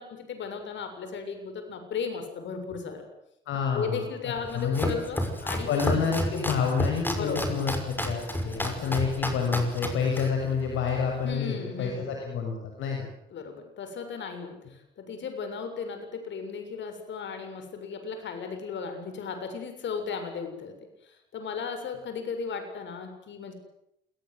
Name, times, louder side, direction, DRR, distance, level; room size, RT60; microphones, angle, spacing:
voice 1, 0.0-3.1 3.7-6.1 7.2-7.6 8.7-9.2 11.2-12.2 13.3-23.5, left 5 dB, 65° left, 7 dB, 7.3 m, -36 dB
voice 2, 3.5-4.0 4.5-4.9 5.7-13.1, left 6 dB, 80° left, 2 dB, 6.5 m, -28 dB
Domestic sounds home sounds, 4.4-11.3, equal, 10° left, 5.8 m, -32 dB
27.5 x 21.0 x 8.0 m, 0.80 s
cardioid pair, 90°, 20 cm